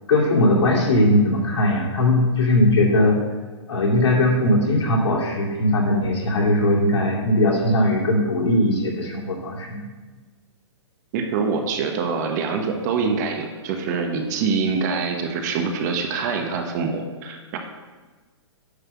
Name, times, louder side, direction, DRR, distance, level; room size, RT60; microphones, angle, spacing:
voice 1, 0.1-3.2 3.7-9.9, left 1 dB, 70° left, -2 dB, 2.5 m, -19 dB
voice 2, 11.1-17.6, right 5 dB, 35° right, 4 dB, 1.1 m, -25 dB
9.8 x 3.3 x 6.9 m, 1.3 s
hypercardioid pair, 150°, 15 cm